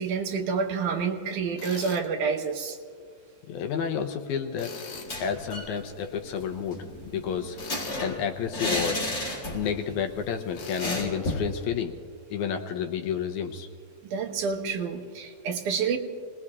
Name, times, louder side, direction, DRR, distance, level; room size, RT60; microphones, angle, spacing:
voice 1, 0.0-2.8 14.0-16.0, right 5 dB, 75° right, 2 dB, 2.6 m, -28 dB
Tools, 1.6-2.1 4.6-5.1 7.5-8.1 10.5-11.0, left 6 dB, 60° left, 2.2 m, -40 dB
voice 2, 3.5-4.7 5.2-7.6 8.0-9.0 9.5-11.9 12.3-13.7, left 7 dB, 75° left, 5 dB, 2.1 m, -30 dB
sound 1, 4.9-5.7 6.0-6.1 6.4-9.9 10.1-10.3 10.8-11.5, left 1 dB, 35° left, 4.0 m, -32 dB
29.5 x 20.0 x 2.4 m, 2.1 s
omnidirectional pair, 3.8 m